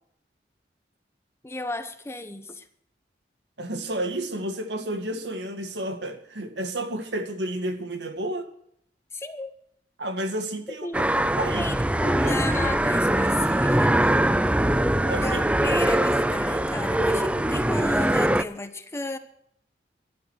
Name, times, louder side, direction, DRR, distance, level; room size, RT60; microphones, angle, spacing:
voice 1, 1.4-2.7 9.1-9.5 10.8-11.1 11.5-14.2 15.2-19.2, left 2 dB, 15° left, 0.9 m, -33 dB
voice 2, 3.6-8.5 10.0-10.9 11.2-12.4 15.1-15.4, right 1 dB, 80° right, 1.9 m, -31 dB
sound 1, 10.9-18.4, right 1 dB, 5° right, 0.4 m, -22 dB
12.5 x 12.0 x 6.4 m
head